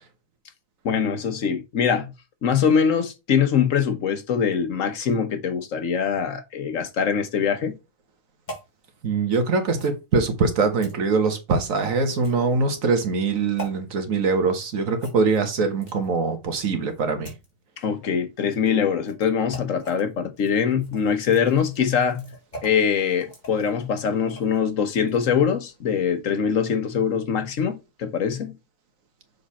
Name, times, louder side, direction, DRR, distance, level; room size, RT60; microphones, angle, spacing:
voice 1, 0.8-2.1 2.4-7.7 17.8-22.3 22.6-28.6, left 7 dB, 75° left, 1.4 m, -23 dB
sound 1, 8.5-8.7 9.7-10.0 10.8-11.0 12.1-12.5 13.6-13.7 15.0-16.1 16.8-17.5 18.5-18.7 19.0-19.2 19.5-20.0 20.4-24.6 25.0-25.2, equal, 35° left, 2.3 m, -42 dB
voice 2, 9.0-17.3, right 4 dB, 85° right, 1.7 m, -23 dB
6.7 x 4.0 x 4.1 m
omnidirectional pair, 1.4 m